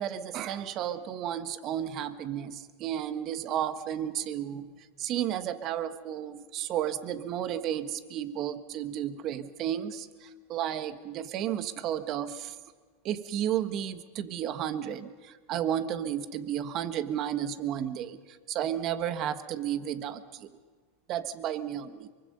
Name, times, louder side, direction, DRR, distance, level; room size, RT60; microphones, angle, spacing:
voice 1, 0.0-4.7 5.0-12.5 13.0-20.5 21.1-22.1, right 10 dB, 45° right, 10 dB, 1.4 m, -33 dB
24.0 x 24.0 x 5.5 m, 1.4 s
hypercardioid pair, 100°, 0 cm